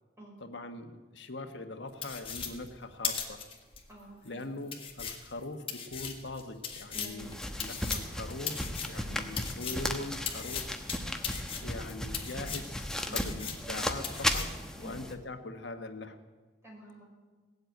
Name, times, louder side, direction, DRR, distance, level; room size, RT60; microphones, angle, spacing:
voice 1, 0.4-3.4 4.2-7.3 7.6-10.6 11.1-11.3 11.6-14.5 14.8-16.2, left 2 dB, 75° left, 7 dB, 1.4 m, -42 dB
sound 1, 2.0-3.8 4.3-4.4 4.7-9.9 10.3-12.8 13.1-13.8 14.0-14.6, left 6 dB, 30° left, 1.7 m, -38 dB
voice 2, 3.9-4.5 6.9-7.8 9.0-9.3 13.1-13.5 14.8-15.0 16.6-17.0, right 2 dB, 15° right, -3 dB, 5.7 m, -49 dB
sound 2, 7.2-15.1, left 1 dB, 5° left, 1.1 m, -36 dB
18.0 x 8.0 x 9.2 m, 1.3 s
head